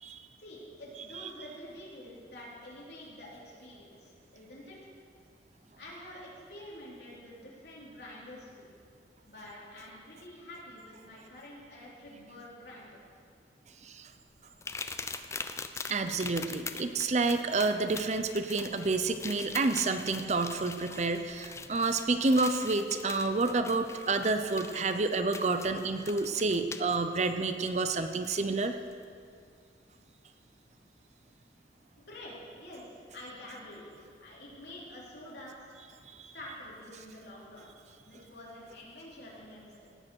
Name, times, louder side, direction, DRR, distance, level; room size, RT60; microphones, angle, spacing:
voice 1, 0.4-4.9 5.8-8.7 9.3-12.9 32.0-33.8 34.1-35.6 36.3-37.7 38.0-39.9, left 1 dB, 70° left, -5 dB, 3.5 m, -47 dB
sound 1, 14.6-27.0 28.2-28.3 28.9-29.0, left 4 dB, 15° left, 0.4 m, -43 dB
voice 2, 15.9-28.8 36.2-36.3, right 3 dB, 40° right, 9 dB, 0.6 m, -29 dB
17.5 x 6.5 x 6.3 m, 2.2 s
head